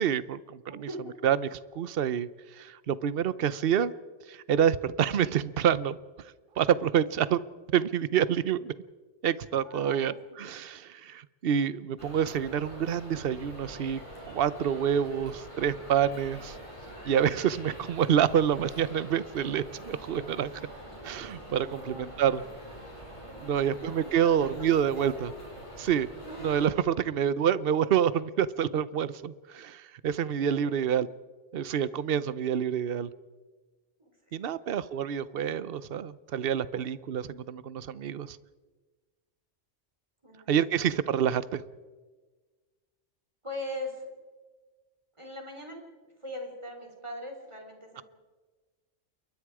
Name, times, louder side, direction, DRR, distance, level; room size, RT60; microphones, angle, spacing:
voice 1, 0.0-0.9 1.2-2.3 2.6-3.9 4.3-6.0 6.6-7.4 7.7-8.7 9.2-14.0 14.3-16.6 17.0-20.5 21.0-22.4 23.4-25.3 25.8-26.1 26.4-31.1 31.5-33.1 34.3-38.4 40.5-41.6, right 9 dB, 55° right, 16 dB, 0.9 m, -27 dB
voice 2, 0.7-1.1 9.6-10.4 21.6-22.6 23.3-24.7 24.9-25.2 26.2-26.5 30.4-30.9 31.9-32.4 34.0-34.1 34.4-34.6 36.7-36.9 40.2-40.5 43.4-44.1 45.2-48.0, left 1 dB, 25° right, 2 dB, 4.2 m, -42 dB
sound 1, 12.0-26.7, right 1 dB, 25° left, 7.7 m, -45 dB
28.5 x 23.0 x 4.9 m, 1.4 s
omnidirectional pair, 1.3 m